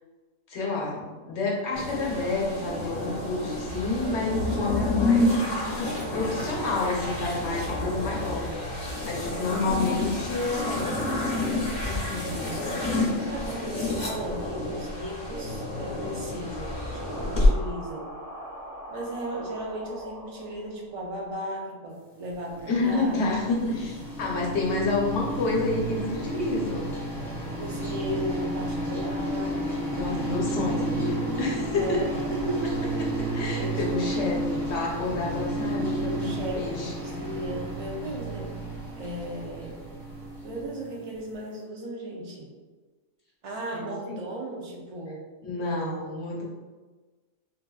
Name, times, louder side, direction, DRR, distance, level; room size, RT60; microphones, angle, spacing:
voice 1, 0.5-11.1 11.8-12.8 22.7-26.9 29.9-32.2 32.6-32.7 33.0-36.9 43.7-44.2 45.4-46.4, left 3 dB, 65° left, -3 dB, 1.0 m, -29 dB
sound 1, 1.8-17.5, left 1 dB, 40° left, 0.8 m, -29 dB
voice 2, 13.3-18.1 18.9-23.3 24.4-24.5 27.6-29.6 31.8-32.7 33.6-34.7 36.0-38.5 39.0-39.8 40.4-42.5 43.4-45.3, right 1 dB, 60° right, -2 dB, 0.3 m, -36 dB
sound 2, 16.1-21.3, equal, 35° right, 0.9 m, -43 dB
sound 3, 22.2-41.2, right 1 dB, ahead, 0.8 m, -32 dB
3.9 x 2.5 x 2.2 m, 1.3 s
omnidirectional pair, 1.3 m